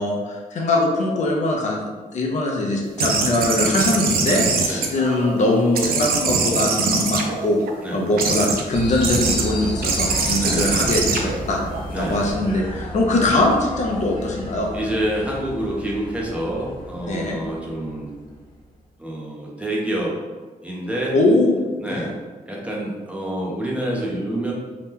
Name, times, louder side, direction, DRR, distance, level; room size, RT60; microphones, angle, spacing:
voice 1, 0.0-7.6 7.9-11.6 12.0-14.7 17.1-17.4 21.1-21.6 21.9-22.1, left 2 dB, 55° left, 0 dB, 0.5 m, -21 dB
sound 1, 3.0-5.4 5.7-7.7 8.2-8.6 9.0-9.4 9.8-12.3, right 4 dB, 85° right, 0.4 m, -23 dB
sound 2, 8.7-18.6, equal, 35° left, 0.8 m, -33 dB
voice 2, 10.4-10.7 11.9-12.2 14.7-18.1 19.0-20.2 20.6-21.1 21.8-22.1 22.5-24.5, right 1 dB, 10° right, -4 dB, 0.5 m, -27 dB
2.8 x 2.2 x 3.5 m, 1.3 s
wide cardioid pair, 160°, 15 cm